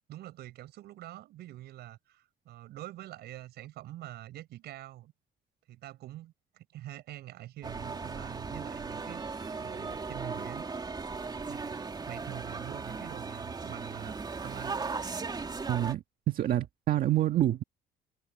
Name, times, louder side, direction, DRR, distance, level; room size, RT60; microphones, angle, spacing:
voice 1, 0.1-5.1 5.7-10.6 11.4-14.8, right 14 dB, 75° right, 7.6 m, -45 dB
sound 1, 7.6-15.9, right 4 dB, 25° right, 3.4 m, -37 dB
voice 2, 15.7-17.6, right 13 dB, 60° right, 1.7 m, -27 dB
cardioid pair, 110°, 17 cm